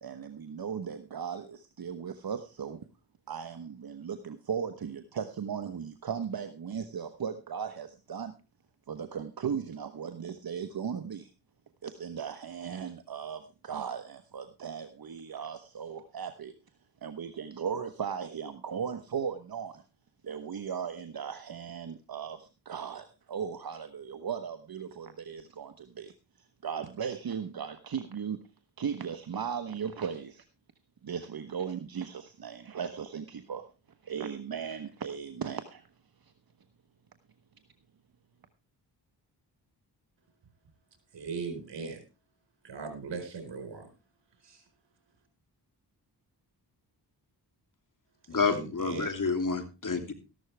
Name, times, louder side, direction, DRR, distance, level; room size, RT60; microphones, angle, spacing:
voice 1, 0.0-2.8 3.3-8.3 8.9-11.3 11.8-16.5 17.0-19.8 20.2-26.1 26.6-28.4 28.8-30.4 31.0-33.6 34.0-35.8, right 7 dB, 55° right, 9 dB, 1.2 m, -37 dB
voice 2, 41.1-42.1 42.6-43.9 44.4-44.6 48.3-49.1, right 5 dB, 75° right, 7 dB, 4.6 m, -39 dB
voice 3, 48.3-50.1, left 4 dB, 45° left, 6 dB, 3.0 m, -29 dB
14.0 x 12.0 x 3.4 m, 0.29 s
cardioid pair, 60°, 43 cm